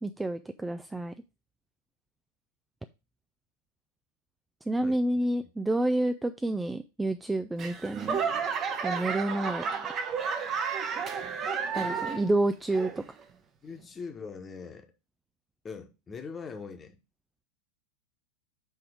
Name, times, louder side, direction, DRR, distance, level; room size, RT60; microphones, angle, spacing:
voice 1, 0.0-1.1 4.7-8.2 8.8-9.6 11.7-13.0, right 1 dB, 5° right, 0.4 m, -29 dB
voice 2, 4.8-5.2 13.6-14.9 15.6-17.0, left 5 dB, 20° left, 1.2 m, -42 dB
Laughter / Clapping / Crowd, 7.6-12.4 12.7-13.2 13.8-13.9, right 6 dB, 30° right, 1.0 m, -32 dB
7.1 x 3.4 x 5.0 m
figure-of-eight pair, 90°, 0 cm